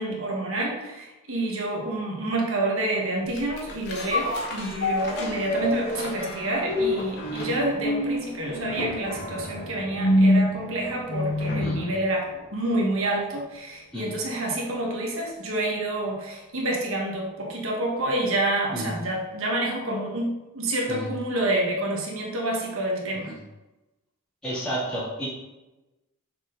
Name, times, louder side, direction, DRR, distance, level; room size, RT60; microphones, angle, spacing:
voice 1, 0.0-23.3, right 1 dB, 65° right, -1 dB, 1.4 m, -28 dB
sound 1, 3.3-11.9 12.3-12.4, left 1 dB, 50° left, 1.3 m, -26 dB
voice 2, 24.4-25.3, equal, 5° left, -10 dB, 2.0 m, -31 dB
6.2 x 4.4 x 3.8 m, 1.0 s
head